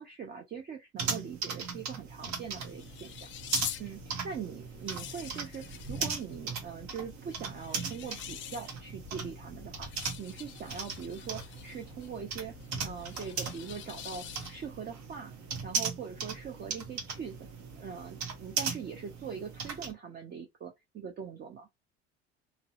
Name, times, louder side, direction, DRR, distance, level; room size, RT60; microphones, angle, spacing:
voice 1, 0.0-15.3 15.6-17.5 17.7-21.7, right 7 dB, 30° right, 0.5 m, -42 dB
sound 1, 1.0-19.9, right 5 dB, 60° right, 0.9 m, -38 dB
sound 2, 2.1-14.8, left 10 dB, 40° left, 0.4 m, -46 dB
2.6 x 2.0 x 2.4 m
hypercardioid pair, 75°, 32 cm